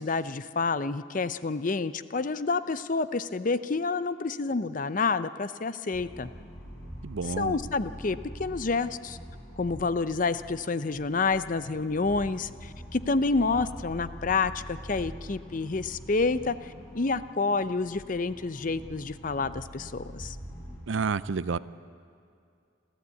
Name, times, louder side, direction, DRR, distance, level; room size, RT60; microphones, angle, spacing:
voice 1, 0.0-6.3 7.4-9.2 9.6-20.4, left 4 dB, 40° left, 13 dB, 0.6 m, -29 dB
sound 1, 5.9-20.8, equal, 10° left, 7.0 m, -44 dB
voice 2, 7.0-7.6 20.9-21.6, right 5 dB, 70° right, 17 dB, 0.5 m, -29 dB
28.5 x 13.5 x 8.3 m, 2.4 s
head